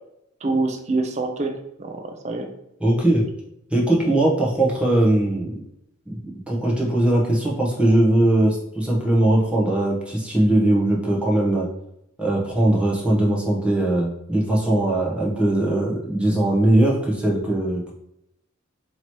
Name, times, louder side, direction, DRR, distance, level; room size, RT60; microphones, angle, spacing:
voice 1, 0.4-2.5, right 3 dB, 35° right, 5 dB, 0.5 m, -26 dB
voice 2, 2.8-3.2 3.7-5.6 6.1-6.2 6.5-11.7 12.2-17.9, right 1 dB, 5° right, -3 dB, 0.8 m, -20 dB
3.0 x 2.9 x 4.4 m, 0.81 s
head